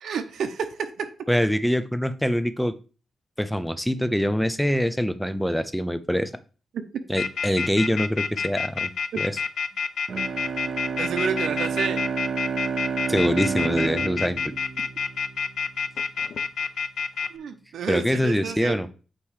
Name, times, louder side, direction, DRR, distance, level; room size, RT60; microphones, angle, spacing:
voice 1, 0.0-1.1 10.7-12.0 17.3-18.8, right 6 dB, 80° right, 7 dB, 0.8 m, -30 dB
voice 2, 1.3-2.7 3.4-6.3 7.1-8.9 9.2-9.4 13.1-14.5 17.9-18.9, equal, ahead, 12 dB, 0.5 m, -24 dB
sound 1, 7.2-17.3, left 6 dB, 70° left, 0.5 m, -28 dB
Bowed string instrument, 10.1-15.6, right 6 dB, 50° right, 0.6 m, -30 dB
8.6 x 3.0 x 4.9 m, 0.37 s
cardioid pair, 120°, 0 cm